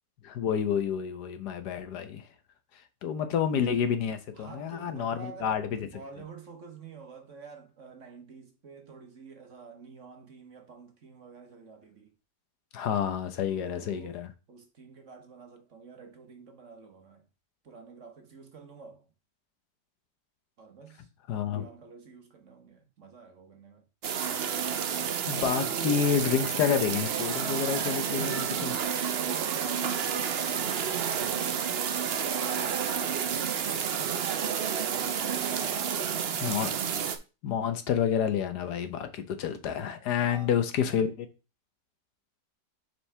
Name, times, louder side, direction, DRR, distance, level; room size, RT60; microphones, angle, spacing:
voice 1, 0.2-2.3 3.0-5.9 12.7-14.3 21.3-21.6 25.3-28.8 36.4-36.7 37.4-41.3, left 8 dB, 70° left, 1.3 m, -29 dB
voice 2, 4.3-12.1 13.5-14.1 14.5-17.2 17.6-19.1 20.6-21.1 21.4-23.8 29.2-32.4 35.6-36.5 40.2-40.6, right 5 dB, 50° right, 1.3 m, -49 dB
sound 1, 24.0-37.2, right 7 dB, 70° right, 0.5 m, -30 dB
7.0 x 4.7 x 3.3 m
omnidirectional pair, 1.8 m